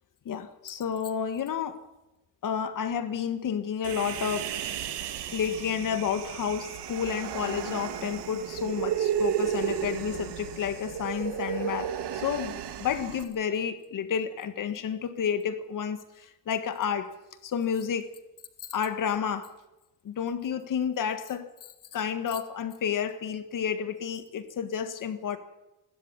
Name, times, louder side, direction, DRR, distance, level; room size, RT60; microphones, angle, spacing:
voice 1, 0.2-1.8 2.4-4.5 5.3-17.1 17.4-18.1 18.6-19.5 20.0-21.5 21.9-25.4, left 7 dB, 50° left, 1.7 m, -30 dB
Human voice, 3.8-13.2, right 9 dB, 75° right, 1.9 m, -33 dB
27.5 x 12.5 x 8.9 m
cardioid pair, 175°, 41 cm